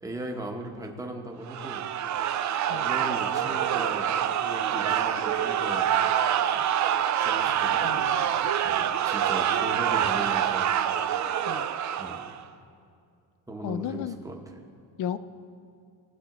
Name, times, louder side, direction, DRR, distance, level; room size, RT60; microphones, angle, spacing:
voice 1, 0.0-1.8 2.7-5.9 7.2-8.1 8.6-10.7 12.0-12.3 13.5-14.6, right 1 dB, 10° right, 1 dB, 1.0 m, -38 dB
sound 1, 1.5-12.4, right 9 dB, 45° right, 0.5 m, -26 dB
voice 2, 7.8-8.4 11.5-11.7 13.6-14.2 15.0-15.2, left 10 dB, 50° left, 13 dB, 0.4 m, -34 dB
19.5 x 7.6 x 3.0 m, 2.3 s
cardioid pair, 140°, 41 cm